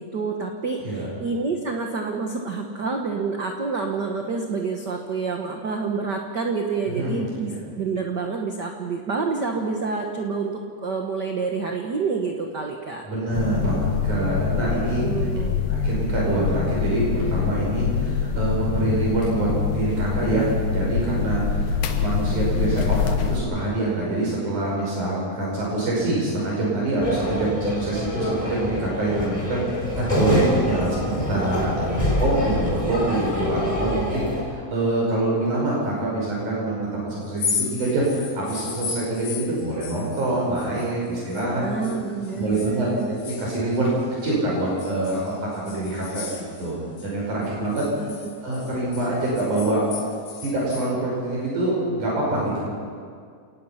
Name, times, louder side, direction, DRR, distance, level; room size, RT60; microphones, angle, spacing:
voice 1, 0.0-13.0 15.0-15.6 41.5-43.1 47.3-48.2, right 4 dB, 50° right, 2 dB, 1.4 m, -28 dB
voice 2, 6.9-7.5 13.1-15.1 15.7-29.6 29.9-41.6 42.3-43.9 44.2-46.8 47.0-47.9 48.4-49.8 50.4-52.6, right 2 dB, 70° right, -5 dB, 7.0 m, -25 dB
sound 1, 13.3-23.4, left 6 dB, 75° left, 2.7 m, -25 dB
sound 2, 27.0-34.4, left 1 dB, 10° left, 4.4 m, -26 dB
sound 3, 37.2-41.5 41.8-44.3 44.8-47.1 47.4-50.9, left 6 dB, 55° left, 2.3 m, -35 dB
29.5 x 19.0 x 5.9 m, 2.2 s
omnidirectional pair, 3.6 m